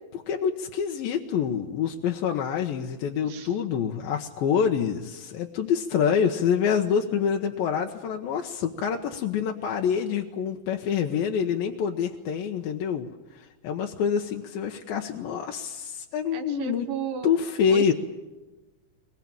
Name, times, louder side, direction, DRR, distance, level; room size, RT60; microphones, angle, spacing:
voice 1, 0.1-13.1 13.3-16.9 17.2-17.9, left 7 dB, 85° left, 3 dB, 2.9 m, -26 dB
voice 2, 3.2-3.5 16.3-17.4 17.7-17.9, right 8 dB, 70° right, 5 dB, 3.0 m, -34 dB
22.0 x 21.5 x 8.8 m, 1.2 s
omnidirectional pair, 4.1 m